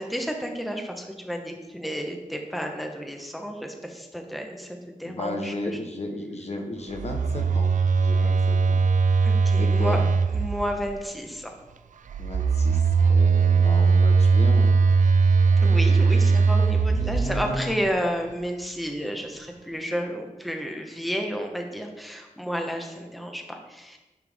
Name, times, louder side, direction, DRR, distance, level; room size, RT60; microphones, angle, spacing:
voice 1, 0.0-5.8 8.2-8.3 9.2-10.0 10.3-11.5 15.6-24.0, equal, ahead, 3 dB, 1.0 m, -31 dB
voice 2, 5.0-7.7 8.0-8.8 9.6-10.1 12.2-14.8 16.9-17.7, left 2 dB, 55° left, 3 dB, 1.0 m, -34 dB
Telephone, 6.9-10.9 12.1-17.8, right 4 dB, 75° right, 0.4 m, -20 dB
9.8 x 4.6 x 3.6 m, 1.1 s
wide cardioid pair, 70°, 13 cm